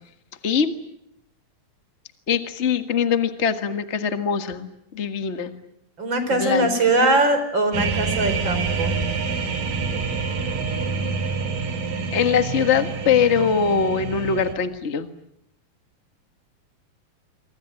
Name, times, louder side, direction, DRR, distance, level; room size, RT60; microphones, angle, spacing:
voice 1, 2.3-5.6 6.3-6.7 12.1-15.1, left 6 dB, 75° left, 8 dB, 0.6 m, -22 dB
voice 2, 6.0-9.0, right 2 dB, 30° right, 9 dB, 4.9 m, -21 dB
sound 1, 7.7-14.5, right 4 dB, 70° right, 4.4 m, -27 dB
27.0 x 24.5 x 9.1 m, 0.79 s
omnidirectional pair, 4.1 m